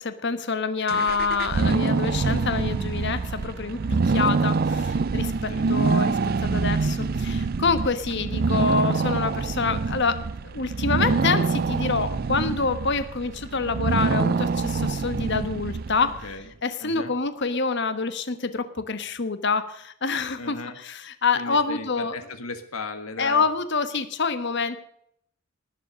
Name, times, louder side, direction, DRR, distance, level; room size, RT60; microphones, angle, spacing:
voice 1, 0.0-3.8 4.0-16.1 16.6-20.6 20.8-22.1 23.2-24.8, left 4 dB, 55° left, 11 dB, 1.2 m, -26 dB
sound 1, 0.9-16.3, right 4 dB, 45° right, 0.4 m, -25 dB
sound 2, 1.7-8.0, left 1 dB, 5° left, 0.9 m, -46 dB
voice 2, 16.0-16.5 16.8-17.1 20.4-20.8 21.3-23.4, left 3 dB, 80° left, 8 dB, 1.6 m, -36 dB
19.0 x 7.4 x 6.4 m, 0.71 s
head